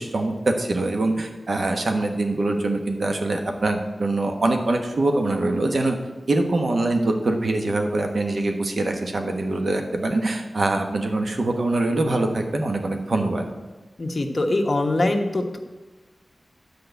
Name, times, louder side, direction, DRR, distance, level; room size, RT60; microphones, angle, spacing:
voice 1, 0.0-6.0 6.3-13.4, right 2 dB, 65° right, 4 dB, 1.3 m, -23 dB
voice 2, 14.0-15.6, left 2 dB, 45° left, 3 dB, 1.1 m, -23 dB
10.5 x 5.1 x 8.2 m, 1.2 s
wide cardioid pair, 85°, 0 cm